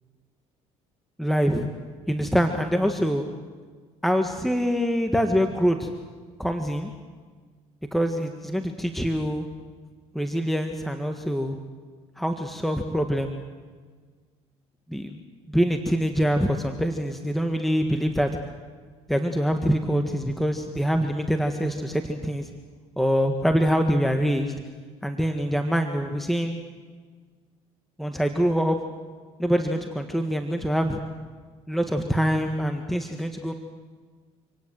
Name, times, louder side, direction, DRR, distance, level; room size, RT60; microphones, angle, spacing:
voice 1, 1.2-1.7 2.1-3.3 4.0-5.9 6.4-6.9 7.9-9.4 10.1-11.5 12.2-13.3 14.9-15.2 15.5-18.3 19.1-22.5 23.0-24.5 25.0-26.6 28.0-28.8 29.4-31.0 31.7-33.5, equal, ahead, 5 dB, 1.7 m, -24 dB
27.0 x 18.0 x 7.8 m, 1.5 s
supercardioid pair, 80°, 14 cm